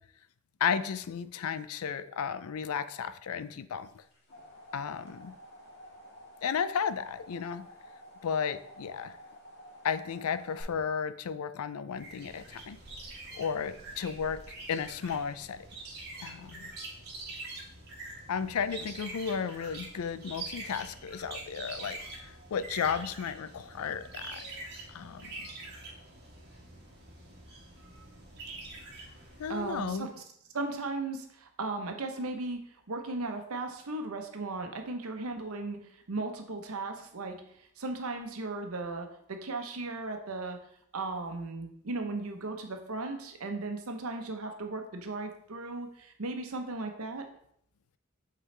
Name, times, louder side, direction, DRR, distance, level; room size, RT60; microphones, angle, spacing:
voice 1, 0.6-4.0 4.7-5.3 6.4-7.7 8.2-9.2 9.8-12.8 13.3-14.4 14.7-15.7 16.2-16.7 18.3-25.4 29.4-30.1, left 7 dB, 90° left, 13 dB, 0.4 m, -34 dB
sound 1, 3.9-10.6, equal, 50° left, 1.8 m, -51 dB
sound 2, 11.9-30.0, right 2 dB, 50° right, 1.4 m, -45 dB
voice 2, 29.5-30.2 30.5-40.6 40.9-47.2, right 3 dB, 90° right, 5 dB, 0.9 m, -36 dB
7.8 x 3.9 x 3.2 m, 0.70 s
head